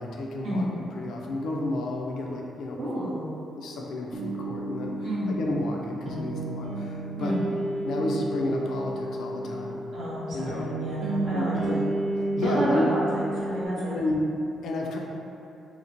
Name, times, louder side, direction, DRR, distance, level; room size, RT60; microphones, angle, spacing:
voice 1, 0.0-2.8 3.1-3.2 3.6-4.9 5.3-7.4 7.8-9.8 10.3-10.7 11.3-11.8 12.4-12.9 13.8-14.3 14.6-15.0, left 2 dB, 75° left, -1 dB, 0.3 m, -31 dB
voice 2, 2.8-3.3 5.0-5.3 7.2-7.4 9.9-11.8 12.4-14.0, equal, 70° right, -9 dB, 0.7 m, -30 dB
sound 1, 4.1-13.7, right 2 dB, 40° right, 0.4 m, -31 dB
2.9 x 2.0 x 2.5 m, 2.7 s
cardioid pair, 120°, 0 cm